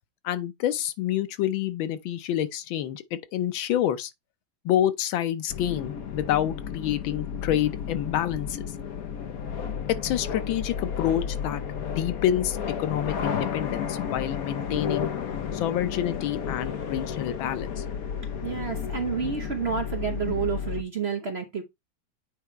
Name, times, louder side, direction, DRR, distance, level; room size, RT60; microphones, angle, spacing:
voice 1, 0.2-4.1 4.6-8.6 9.9-15.1 15.5-17.8 20.3-20.4, left 11 dB, 90° left, 1.5 m, -28 dB
sound 1, 5.5-20.8, left 7 dB, 55° left, 1.1 m, -32 dB
voice 2, 18.4-21.6, right 6 dB, 50° right, 0.8 m, -29 dB
8.5 x 3.0 x 4.4 m
omnidirectional pair, 2.1 m